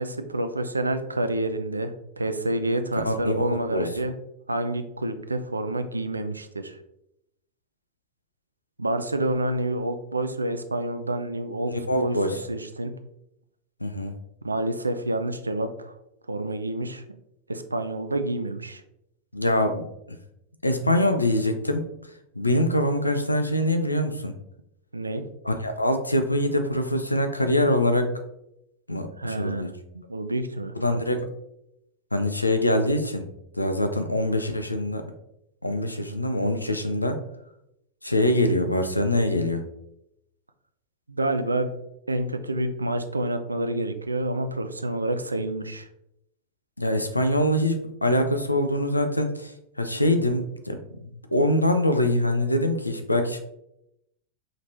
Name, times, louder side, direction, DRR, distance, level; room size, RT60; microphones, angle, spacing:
voice 1, 0.0-4.1 4.5-6.8 8.8-12.2 12.5-12.9 14.4-15.9 16.3-17.0 17.5-18.8 24.9-25.2 29.2-30.7 41.1-41.7 42.1-45.9, right 1 dB, 80° right, 9 dB, 0.4 m, -28 dB
voice 2, 3.0-3.9 11.7-12.4 13.8-14.1 19.3-20.2 20.6-21.8 22.4-24.3 25.4-28.1 28.9-29.7 30.7-31.3 32.1-33.2 33.6-35.1 35.6-37.2 38.0-39.6 46.8-49.5 49.8-50.8 51.3-53.4, left 1 dB, 85° left, 7 dB, 0.5 m, -24 dB
5.0 x 3.2 x 2.6 m, 0.82 s
figure-of-eight pair, 90°, 0 cm